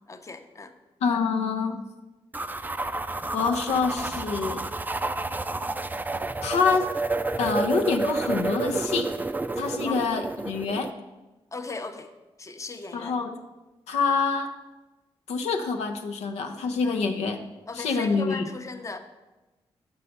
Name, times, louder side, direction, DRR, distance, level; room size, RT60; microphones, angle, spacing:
voice 1, 0.1-0.7 9.8-10.1 11.5-12.1 12.4-13.2 16.8-17.0 17.7-19.0, left 4 dB, 30° left, 7 dB, 0.7 m, -37 dB
voice 2, 1.0-1.8 3.3-4.6 6.4-6.9 7.4-9.1 9.6-10.9 12.9-13.3 13.9-14.5 15.3-17.4 17.7-18.5, left 4 dB, 90° left, 5 dB, 0.5 m, -26 dB
sound 1, 2.3-10.9, right 2 dB, 15° right, 0.3 m, -30 dB
5.4 x 5.4 x 5.6 m, 1.1 s
cardioid pair, 55°, 11 cm